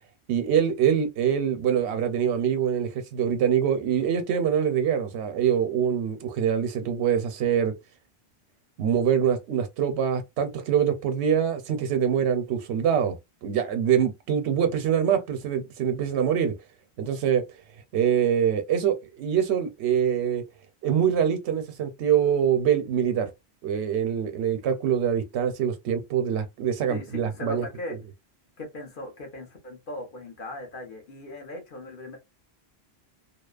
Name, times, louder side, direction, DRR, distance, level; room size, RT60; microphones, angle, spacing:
voice 1, 0.3-7.7 8.8-13.2 13.4-16.5 17.0-17.4 17.9-20.4 20.8-23.3 23.6-27.7, right 8 dB, 85° right, 0.9 m, -24 dB
voice 2, 26.9-28.0 28.6-32.2, left 2 dB, 55° left, 1.1 m, -38 dB
2.8 x 2.0 x 2.3 m
omnidirectional pair, 1.1 m